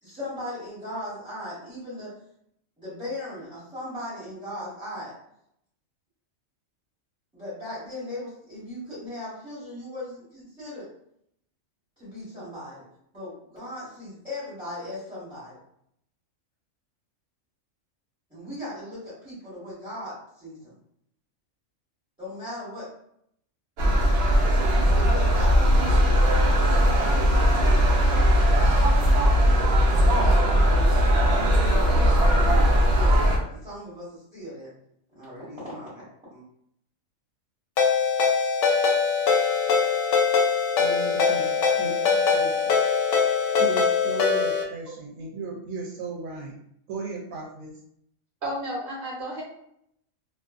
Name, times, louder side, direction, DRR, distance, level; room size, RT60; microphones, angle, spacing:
voice 1, 0.0-2.1 2.8-5.1 7.3-10.9 12.0-12.8 13.1-15.6 18.3-20.7 22.2-22.9 24.5-26.7 29.9-31.0 31.2-33.2 33.5-34.7 35.1-36.1 36.3-36.4, left 1 dB, 5° right, -12 dB, 1.1 m, -38 dB
sound 1, 23.8-33.4, equal, 65° right, 0.7 m, -19 dB
Ringtone, 37.8-44.6, left 5 dB, 70° left, 0.8 m, -22 dB
voice 2, 40.8-42.7 43.6-46.6 46.9-47.7, right 4 dB, 85° right, -2 dB, 1.0 m, -36 dB
voice 3, 48.4-49.4, right 1 dB, 45° right, -5 dB, 1.1 m, -32 dB
2.5 x 2.3 x 2.4 m, 0.72 s
omnidirectional pair, 1.4 m